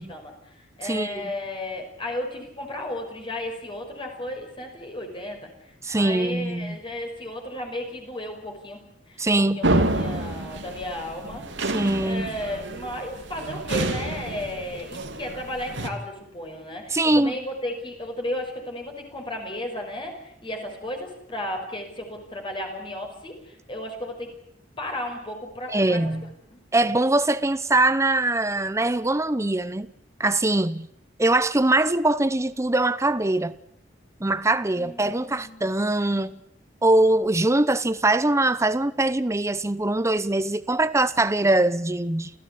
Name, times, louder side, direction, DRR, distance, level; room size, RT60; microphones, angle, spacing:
voice 1, 0.1-9.2 9.6-11.4 12.0-24.3 24.8-26.0 26.5-26.6 34.7-35.7, left 1 dB, 30° left, 5.8 m, -34 dB
voice 2, 0.8-1.3 5.8-6.8 9.2-9.7 11.6-12.3 16.9-17.3 25.7-26.3 26.7-29.9 30.2-30.9 31.2-33.5 34.2-36.4 36.8-42.3, right 2 dB, 15° right, 0.8 m, -22 dB
sound 1, 9.6-15.9, right 1 dB, 75° right, 2.8 m, -28 dB
29.0 x 16.0 x 8.6 m
head